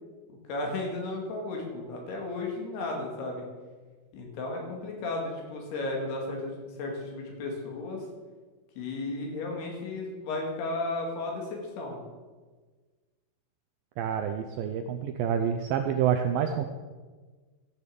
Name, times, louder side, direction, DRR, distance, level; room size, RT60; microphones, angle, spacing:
voice 1, 0.3-3.4 4.1-8.0 8.8-12.0, left 2 dB, 80° left, 1 dB, 4.2 m, -34 dB
voice 2, 14.0-16.6, right 8 dB, 80° right, 6 dB, 2.0 m, -28 dB
13.5 x 7.0 x 6.8 m, 1.4 s
omnidirectional pair, 4.6 m